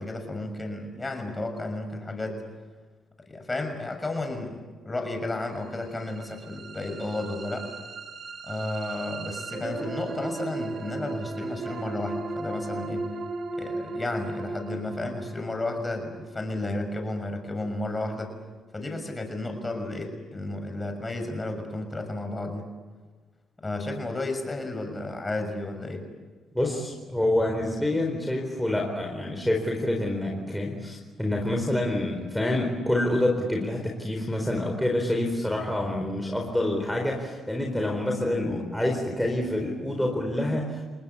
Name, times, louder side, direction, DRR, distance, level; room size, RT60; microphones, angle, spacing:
voice 1, 0.0-2.4 3.3-7.7 8.4-13.1 13.6-18.3 18.7-22.7 23.6-26.0, left 2 dB, 20° left, 5 dB, 6.3 m, -32 dB
sound 1, 5.7-17.7, right 3 dB, 50° right, 2.3 m, -36 dB
voice 2, 26.5-40.9, left 1 dB, ahead, 0 dB, 4.3 m, -27 dB
30.0 x 19.0 x 8.5 m, 1.4 s
cardioid pair, 90°, 0 cm